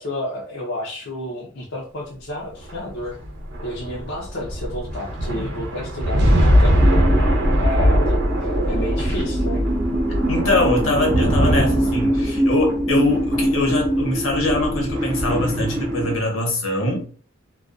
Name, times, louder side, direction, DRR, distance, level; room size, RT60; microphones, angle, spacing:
voice 1, 0.0-3.2 3.6-7.1 7.6-9.7, left 1 dB, 65° left, -2 dB, 0.5 m, -31 dB
sound 1, 2.6-16.2, equal, 60° right, 0.7 m, -21 dB
sound 2, 6.8-16.2, right 1 dB, 15° right, 0.5 m, -24 dB
voice 2, 10.3-17.1, left 2 dB, 80° left, 1 dB, 0.9 m, -23 dB
2.3 x 2.3 x 2.4 m, 0.42 s
head